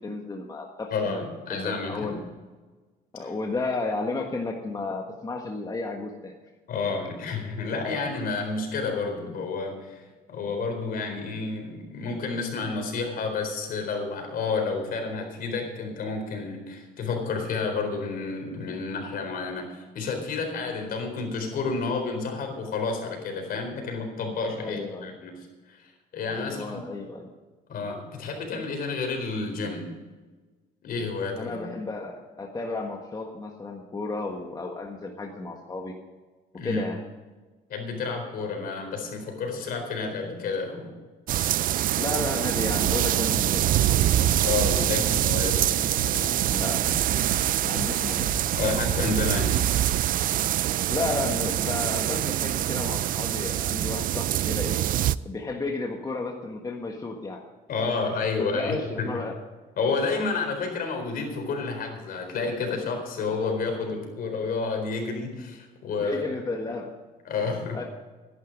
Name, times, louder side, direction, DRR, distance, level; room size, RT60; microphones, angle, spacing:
voice 1, 0.0-1.2 1.5-2.2 3.1-6.3 24.6-25.2 26.3-27.3 31.4-35.9 36.6-37.0 42.0-43.6 46.5-47.0 47.6-48.3 50.9-54.8 55.2-57.4 58.4-59.3 66.0-66.9 67.7-67.8, left 3 dB, 20° left, 1 dB, 1.5 m, -33 dB
voice 2, 0.9-2.2 3.2-3.3 6.7-26.8 27.7-29.9 30.8-31.7 36.6-36.9 37.7-40.9 44.4-46.4 48.5-49.6 57.7-59.2 59.8-66.3 67.2-67.8, left 4 dB, 60° left, 3 dB, 4.2 m, -30 dB
sound 1, 41.3-55.2, right 13 dB, 55° right, 0.4 m, -25 dB
sound 2, 42.9-50.0, right 6 dB, 90° right, 1.3 m, -33 dB
13.5 x 11.0 x 5.3 m, 1.3 s
cardioid pair, 110°, 17 cm